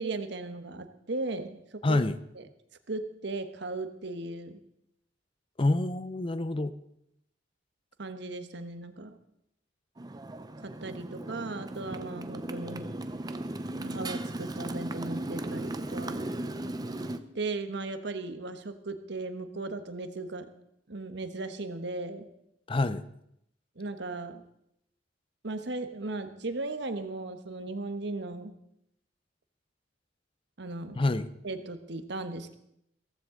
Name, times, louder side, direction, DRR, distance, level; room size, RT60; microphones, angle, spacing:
voice 1, 0.0-1.6 1.9-2.0 2.3-2.4 2.9-4.6 8.0-9.2 10.6-12.9 13.8-16.3 17.3-20.5 20.9-22.3 23.8-24.4 25.4-28.5 30.6-31.0 31.4-32.6, right 2 dB, 65° right, 9 dB, 1.2 m, -37 dB
voice 2, 1.8-2.2 5.6-6.7 22.7-23.0 30.9-31.3, left 2 dB, 30° left, 14 dB, 0.6 m, -27 dB
Motorcycle, 10.0-17.2, right 1 dB, 20° right, 0.7 m, -36 dB
16.0 x 14.5 x 3.8 m, 0.78 s
head